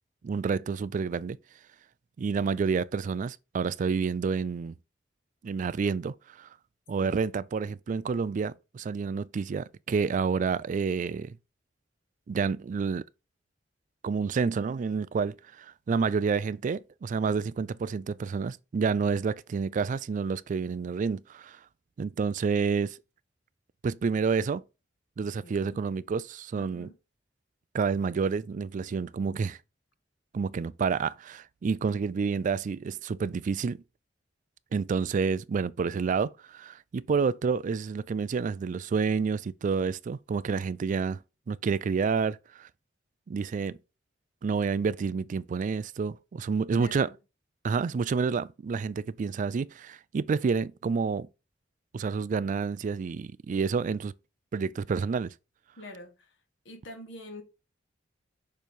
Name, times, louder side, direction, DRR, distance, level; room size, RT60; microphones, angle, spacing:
voice 1, 0.2-1.4 2.2-4.7 5.4-6.5 6.9-11.4 12.3-13.0 14.0-21.6 22.0-23.0 23.8-24.6 25.2-26.9 27.7-29.6 30.3-33.8 34.7-41.2 41.5-42.7 43.3-43.8 44.4-47.1 47.6-51.3 51.9-54.1 54.5-55.3, right 5 dB, 45° right, 0.3 m, -29 dB
voice 2, 25.2-25.8 26.5-27.0 46.7-47.2 55.8-56.4 56.6-57.4, left 1 dB, 85° left, 1.6 m, -46 dB
6.6 x 3.1 x 5.2 m
head